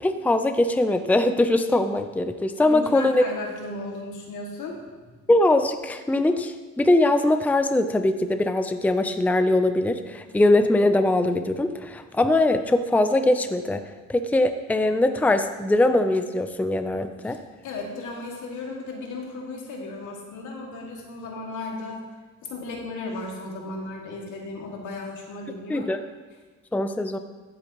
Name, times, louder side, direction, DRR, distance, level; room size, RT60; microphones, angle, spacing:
voice 1, 0.0-3.2 5.3-13.8 14.1-17.4 25.7-26.0 26.7-27.2, left 2 dB, 5° left, 8 dB, 0.6 m, -21 dB
voice 2, 2.6-5.1 17.2-17.4 17.6-22.0 22.4-25.9, left 2 dB, 80° left, -1 dB, 2.3 m, -35 dB
15.0 x 8.8 x 3.1 m, 1.3 s
cardioid pair, 90°, 30 cm